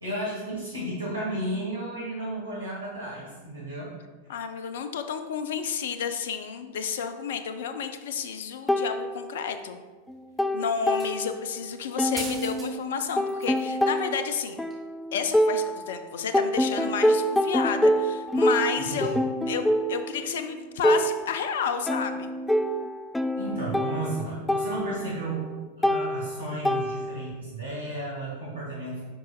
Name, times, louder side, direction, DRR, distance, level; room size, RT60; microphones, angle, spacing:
voice 1, 0.0-3.9 18.9-19.2 23.4-25.5 25.8-29.0, right 1 dB, 75° right, -6 dB, 2.0 m, -33 dB
voice 2, 4.3-9.8 10.5-14.6 15.1-22.3, left 7 dB, 60° left, 9 dB, 0.5 m, -31 dB
sound 1, 8.7-9.8 10.1-11.6 12.0-16.0 16.3-27.4, equal, 5° left, 0.3 m, -27 dB
sound 2, 10.9-11.3 12.2-12.7 13.0-13.7 14.7-14.8, right 2 dB, 15° right, 1.8 m, -39 dB
10.0 x 5.1 x 2.4 m, 1.3 s
figure-of-eight pair, 90°, 0 cm